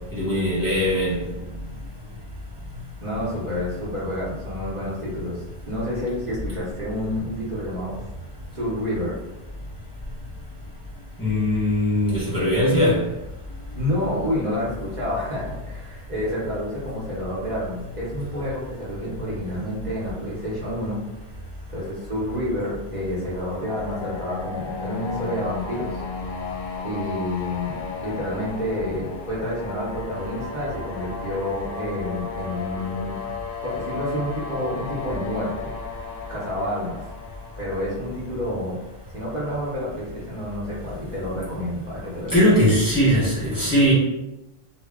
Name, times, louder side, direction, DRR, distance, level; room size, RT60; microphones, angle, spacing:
voice 1, 0.1-1.2 11.2-13.0 42.3-43.9, equal, 20° left, -9 dB, 0.7 m, -20 dB
voice 2, 3.0-8.0 8.5-9.2 13.8-21.0 21.7-26.0 26.8-33.2 33.6-37.0 37.6-38.8 39.1-42.5, left 1 dB, 45° right, -7 dB, 0.8 m, -29 dB
sound 1, 23.2-39.1, left 5 dB, 60° left, 0.7 m, -34 dB
2.1 x 2.1 x 3.4 m, 0.93 s
omnidirectional pair, 1.1 m